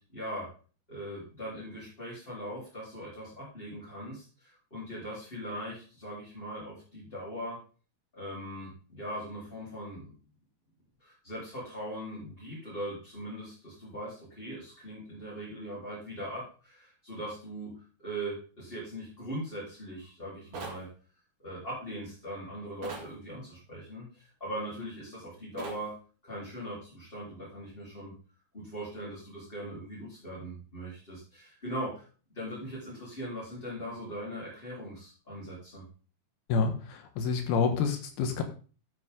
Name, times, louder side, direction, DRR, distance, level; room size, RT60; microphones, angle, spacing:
voice 1, 0.1-0.5 0.9-7.6 8.1-10.1 11.0-17.7 18.0-20.9 21.4-25.9 26.2-28.1 28.5-32.1 32.3-35.8, equal, 15° left, -8 dB, 4.0 m, -40 dB
sound 1, 20.5-20.8 22.8-23.1 25.6-25.8, right 3 dB, 40° right, 2.1 m, -40 dB
voice 2, 36.5-38.4, left 5 dB, 80° left, 7 dB, 3.2 m, -28 dB
12.0 x 8.2 x 3.8 m, 0.38 s
omnidirectional pair, 4.3 m